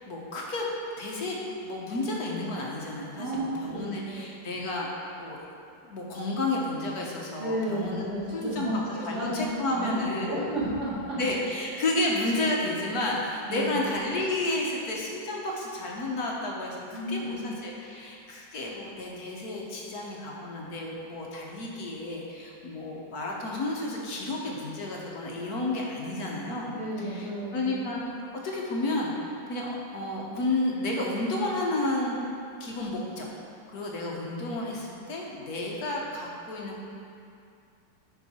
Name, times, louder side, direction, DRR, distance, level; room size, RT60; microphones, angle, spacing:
voice 1, 0.0-0.7 1.0-4.9 5.2-5.4 5.9-8.0 8.3-10.4 11.1-26.8 27.1-32.2 32.6-33.3 33.7-36.9, left 2 dB, 60° left, -2 dB, 1.4 m, -31 dB
voice 2, 3.2-4.3 7.4-9.4 9.7-11.2 12.4-12.5 13.5-13.8 16.9-17.5 26.8-27.8, right 1 dB, 65° right, -8 dB, 2.5 m, -32 dB
11.0 x 4.9 x 4.2 m, 2.5 s
omnidirectional pair, 1.9 m